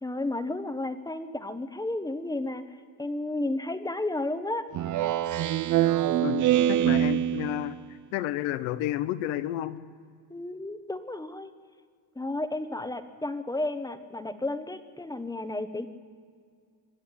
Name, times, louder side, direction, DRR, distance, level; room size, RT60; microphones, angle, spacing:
voice 1, 0.0-2.6 3.0-4.6 10.3-11.5 12.1-15.9, left 2 dB, 10° left, 9 dB, 1.2 m, -32 dB
Speech synthesizer, 4.7-7.8, right 12 dB, 40° right, 0.6 m, -24 dB
voice 2, 6.2-7.8 8.1-9.8, left 13 dB, 75° left, 14 dB, 1.2 m, -31 dB
25.5 x 11.5 x 9.9 m, 2.1 s
cardioid pair, 115°, 50 cm